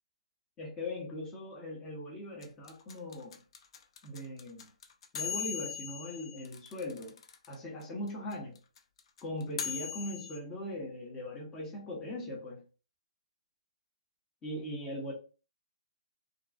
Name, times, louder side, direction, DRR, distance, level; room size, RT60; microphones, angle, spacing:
voice 1, 0.6-3.4 4.0-4.7 5.1-7.1 7.5-8.6 9.2-12.6 14.4-15.1, left 1 dB, 15° left, -2 dB, 0.7 m, -40 dB
sound 1, 2.4-7.5 7.8-7.9 8.1-10.4, left 7 dB, 45° left, 0.3 m, -39 dB
2.5 x 2.2 x 2.3 m, 0.36 s
figure-of-eight pair, 125°, 4 cm